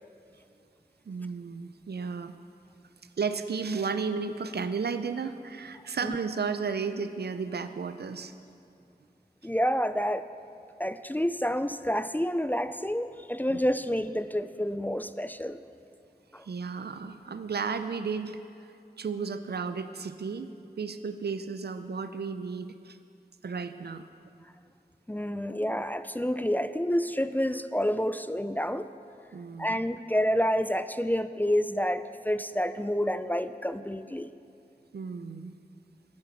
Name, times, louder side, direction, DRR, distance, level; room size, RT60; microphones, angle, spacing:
voice 1, 1.1-2.3 3.2-8.3 16.5-18.4 19.0-20.5 20.8-23.0 23.4-24.0 29.3-29.8 34.9-35.5, right 5 dB, 80° right, 10 dB, 0.5 m, -33 dB
voice 2, 9.4-10.2 10.8-15.6 16.3-16.5 25.1-28.9 29.6-34.3, equal, 10° left, 12 dB, 0.3 m, -29 dB
10.0 x 8.9 x 5.9 m, 2.5 s
wide cardioid pair, 60°, 16 cm